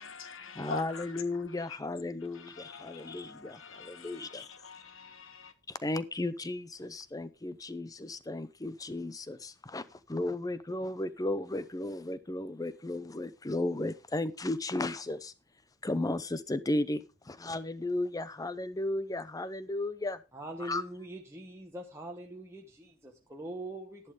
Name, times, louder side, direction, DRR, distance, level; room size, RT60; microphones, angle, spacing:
voice 1, 0.0-1.0 2.6-4.3 4.6-5.5, left 5 dB, 60° left, 1.3 m, -44 dB
voice 2, 0.5-4.5 5.7-15.3 15.8-20.2 20.6-20.8, left 2 dB, 15° left, 0.6 m, -35 dB
voice 3, 20.3-24.1, right 1 dB, 10° right, 1.1 m, -42 dB
11.0 x 11.0 x 3.6 m
head